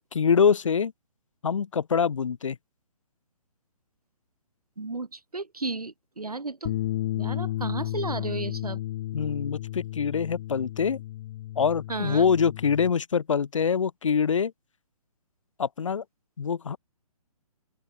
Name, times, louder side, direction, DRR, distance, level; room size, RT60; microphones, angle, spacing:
voice 1, 0.1-0.9 1.4-2.6 9.1-11.0 11.6-14.5 15.6-16.0 16.4-16.8, left 6 dB, 55° left, 1.5 m, -24 dB
voice 2, 4.8-6.8 7.1-8.8 11.9-12.3, right 3 dB, 80° right, 1.5 m, -33 dB
Bass guitar, 6.6-12.9, left 14 dB, 30° left, 0.8 m, -33 dB
open air
figure-of-eight pair, 135°, 19 cm